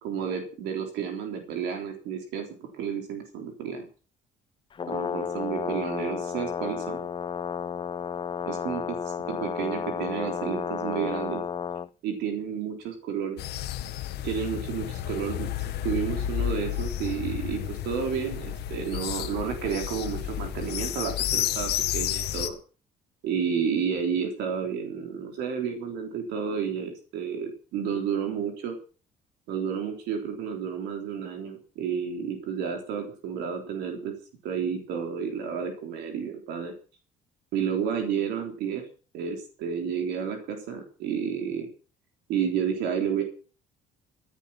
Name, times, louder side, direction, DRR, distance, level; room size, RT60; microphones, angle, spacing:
voice 1, 0.0-3.9 4.9-7.1 8.5-8.8 9.3-11.4 12.0-13.4 14.2-22.6 23.2-28.8 29.5-34.1 34.4-36.7 37.5-38.8 39.1-41.7 42.3-43.2, right 7 dB, 85° right, 4 dB, 3.6 m, -31 dB
Brass instrument, 4.7-11.9, left 6 dB, 30° left, 0.7 m, -32 dB
sound 1, 13.4-22.5, left 12 dB, 75° left, 1.7 m, -31 dB
15.5 x 10.5 x 6.0 m, 0.38 s
cardioid pair, 110°, 17 cm